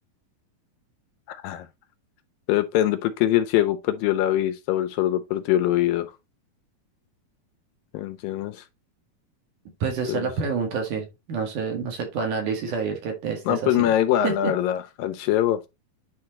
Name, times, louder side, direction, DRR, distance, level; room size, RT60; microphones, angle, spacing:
voice 1, 1.3-1.7 2.5-6.1 7.9-8.6 10.1-10.3 13.5-15.6, left 12 dB, 80° left, 2.2 m, -23 dB
voice 2, 9.8-13.9 14.2-14.5, right 5 dB, 60° right, 3.2 m, -28 dB
9.6 x 4.5 x 2.9 m
omnidirectional pair, 4.3 m